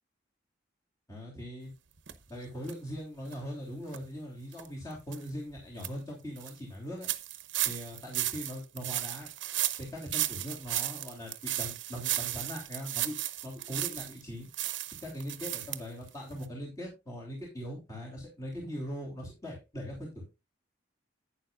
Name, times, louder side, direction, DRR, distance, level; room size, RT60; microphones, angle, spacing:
voice 1, 1.1-1.7 2.3-7.1 7.6-9.3 9.8-13.1 13.4-14.5 15.0-20.2, equal, 20° left, -3 dB, 3.1 m, -40 dB
sound 1, 2.1-2.2 2.6-2.7 3.2-3.3 3.9-4.0 4.5-4.7 5.1-5.2 5.6-5.9 6.4-6.5 7.0-14.2 14.5-15.8 16.1-16.2 16.4-16.5, right 14 dB, 75° right, 0.8 m, -34 dB
11.5 x 9.0 x 2.5 m, 0.26 s
head